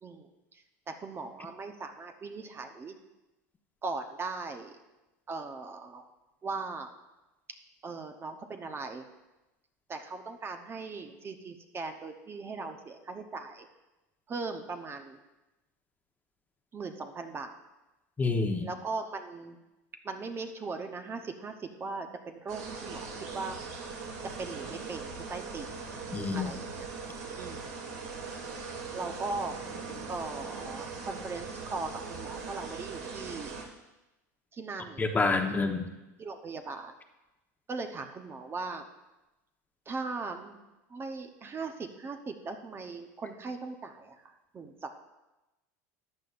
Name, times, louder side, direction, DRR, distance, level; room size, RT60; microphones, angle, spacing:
voice 1, 0.0-3.0 3.8-4.8 5.3-6.0 6.4-6.9 7.8-9.1 9.9-13.7 14.3-15.2 16.7-17.6 18.6-19.6 20.0-23.6 24.4-25.7 26.3-26.9 27.4-27.6 28.6-29.6 30.1-33.5 34.5-35.0 35.5-35.6 36.2-36.9 37.7-38.8 39.9-40.6 40.9-44.2 44.5-45.0, right 3 dB, 25° right, 6 dB, 0.9 m, -39 dB
voice 2, 18.2-18.7 26.1-26.5 35.0-35.9, left 3 dB, 20° left, 4 dB, 1.0 m, -28 dB
sound 1, 22.5-33.6, right 4 dB, 75° right, 2.3 m, -40 dB
14.0 x 9.3 x 2.5 m, 1.0 s
hypercardioid pair, 95°, 9 cm